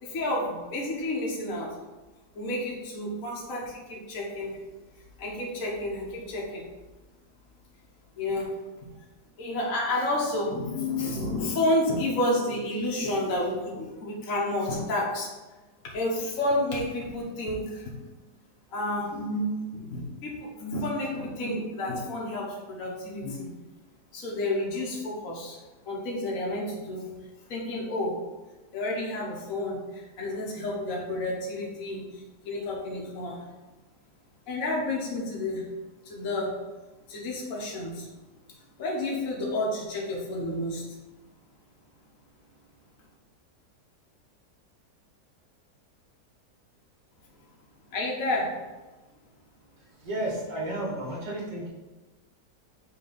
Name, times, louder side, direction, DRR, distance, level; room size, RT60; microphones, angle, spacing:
voice 1, 0.0-1.8 2.3-4.6 5.2-6.7 8.2-8.5 8.8-8.9 9.4-15.3 15.8-17.9 18.7-23.5 24.1-25.6 25.8-27.0 27.5-28.2 28.7-33.4 34.5-35.6 36.0-36.6 37.1-38.1 38.8-40.8 47.9-48.5, left 1 dB, 55° left, -3 dB, 1.5 m, -30 dB
voice 2, 50.0-51.7, right 1 dB, 80° right, -2 dB, 2.3 m, -32 dB
5.9 x 3.6 x 5.4 m, 1.2 s
omnidirectional pair, 1.8 m